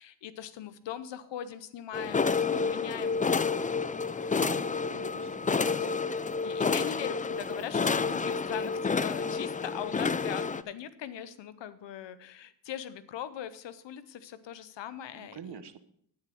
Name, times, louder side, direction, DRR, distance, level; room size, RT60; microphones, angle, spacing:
voice 1, 0.0-3.7 4.1-4.4 5.2-5.7 6.4-15.6, left 10 dB, 90° left, 14 dB, 0.7 m, -41 dB
sound 1, 1.9-10.6, left 5 dB, 20° left, 0.4 m, -29 dB
voice 2, 4.3-5.9 15.1-15.8, right 7 dB, 70° right, 12 dB, 1.0 m, -46 dB
9.4 x 9.0 x 4.4 m, 0.66 s
cardioid pair, 55°, 42 cm